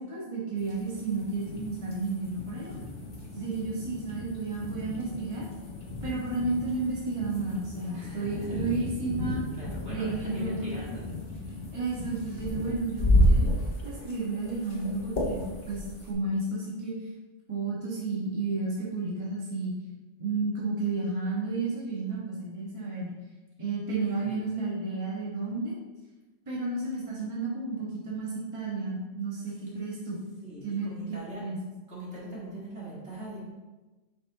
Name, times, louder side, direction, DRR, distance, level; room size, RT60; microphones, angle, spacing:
voice 1, 0.0-2.8 3.3-5.4 6.0-9.4 9.9-10.6 11.7-13.5 13.8-16.9 17.5-19.7 20.2-23.1 23.6-25.7 26.5-30.2 30.6-31.6, right 3 dB, 25° right, -7 dB, 1.6 m, -32 dB
sound 1, 0.6-16.1, left 1 dB, 45° left, 1.4 m, -32 dB
voice 2, 7.9-8.7 9.6-11.0 24.2-24.5 30.4-31.5 31.9-33.5, right 1 dB, 60° right, -7 dB, 2.7 m, -41 dB
7.8 x 6.2 x 3.0 m, 1.2 s
omnidirectional pair, 1.3 m